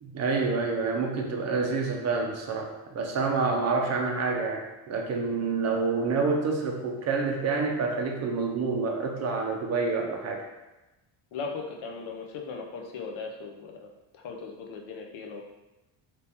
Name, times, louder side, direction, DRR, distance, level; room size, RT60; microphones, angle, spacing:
voice 1, 0.0-10.4, right 4 dB, 35° right, 1 dB, 0.4 m, -28 dB
voice 2, 11.3-13.9 14.1-15.4, left 4 dB, 75° left, 1 dB, 0.7 m, -38 dB
2.9 x 2.7 x 3.4 m, 1.0 s
cardioid pair, 170°, 48 cm